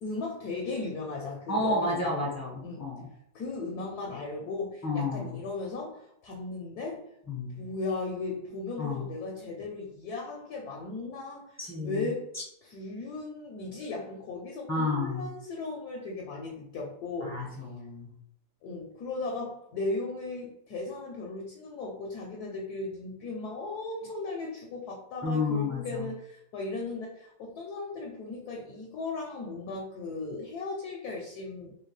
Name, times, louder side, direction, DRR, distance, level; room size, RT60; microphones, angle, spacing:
voice 1, 0.0-2.3 2.6-2.9 3.3-7.1 7.6-12.3 12.6-17.4 18.6-31.8, left 3 dB, 70° left, 0 dB, 1.0 m, -36 dB
voice 2, 1.5-3.1 4.8-5.4 7.3-7.6 8.8-9.1 11.6-12.1 14.7-15.3 17.2-18.1 25.2-26.1, left 2 dB, 15° left, -5 dB, 0.6 m, -31 dB
3.5 x 2.8 x 3.1 m, 0.75 s
omnidirectional pair, 2.1 m